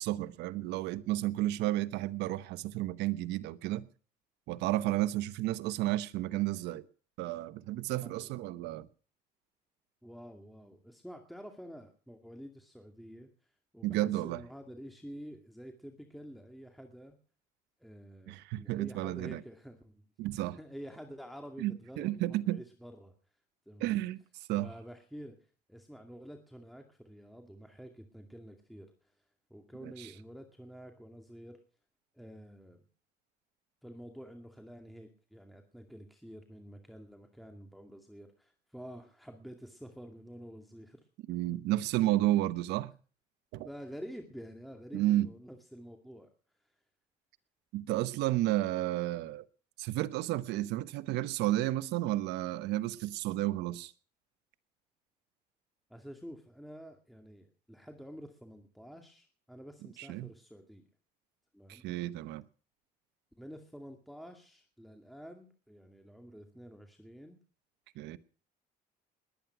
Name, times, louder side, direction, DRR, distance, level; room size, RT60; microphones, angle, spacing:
voice 1, 0.0-3.9 4.5-6.8 7.2-8.9 13.8-14.4 18.3-19.4 20.2-20.6 21.6-22.6 23.8-24.2 24.5-24.7 29.8-30.1 41.3-42.9 43.5-43.7 44.9-45.3 47.7-49.4 49.8-53.9 60.0-60.3 61.7-62.4 68.0-68.2, right 15 dB, 90° right, 0.9 m, -32 dB
voice 2, 7.9-8.3 10.0-13.3 13.7-17.2 17.8-20.1 20.5-23.1 23.7-24.0 24.6-25.4 25.7-29.1 29.5-31.6 32.1-32.8 33.8-41.0 43.6-46.3 55.9-60.9 61.5-61.8 63.4-67.4, equal, ahead, 2.3 m, -49 dB
20.5 x 9.2 x 5.9 m
cardioid pair, 110°, 17 cm